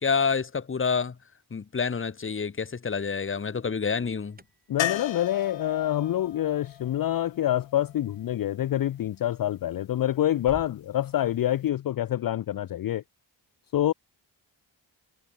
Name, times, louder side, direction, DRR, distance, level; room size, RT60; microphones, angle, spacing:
voice 1, 0.0-1.2 1.5-4.4, left 5 dB, 25° left, 0.8 m, -28 dB
Alarm, 3.9-10.8, right 2 dB, 20° right, 2.1 m, -55 dB
voice 2, 4.7-13.0 13.7-13.9, left 12 dB, 50° left, 0.5 m, -26 dB
sound 1, 4.8-8.7 11.3-11.4 11.7-11.8, left 11 dB, 80° left, 0.9 m, -36 dB
cardioid pair, 45°, 45 cm